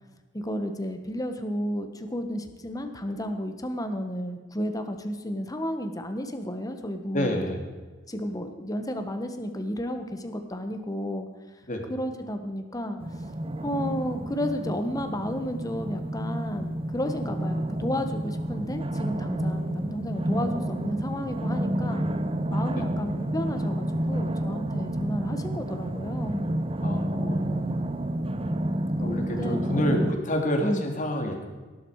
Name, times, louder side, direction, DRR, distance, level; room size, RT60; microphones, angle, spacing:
voice 1, 0.3-7.4 8.1-11.3 11.9-13.0 13.6-22.0 22.5-26.5 29.1-30.1 30.6-30.8, equal, 20° left, 7 dB, 1.4 m, -32 dB
voice 2, 7.1-7.6 11.7-11.8 22.8-22.9 26.8-27.7 29.0-31.4, equal, 40° left, 3 dB, 2.5 m, -29 dB
sound 1, 13.0-30.1, right 1 dB, 30° right, 0.8 m, -30 dB
18.0 x 11.5 x 4.9 m, 1.4 s
head